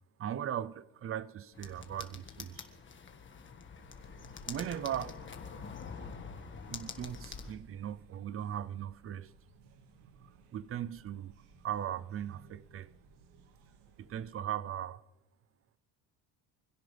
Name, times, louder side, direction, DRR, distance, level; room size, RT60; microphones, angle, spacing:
voice 1, 0.2-2.7 4.5-5.2 6.7-9.3 10.2-11.3 11.6-12.9 14.0-15.0, right 10 dB, 35° right, 0.6 m, -38 dB
sound 1, 1.5-7.5, left 5 dB, 30° left, 1.6 m, -46 dB
sound 2, 3.8-14.3, right 5 dB, 85° right, 2.0 m, -61 dB
25.0 x 16.5 x 3.4 m
cardioid pair, 120°, 41 cm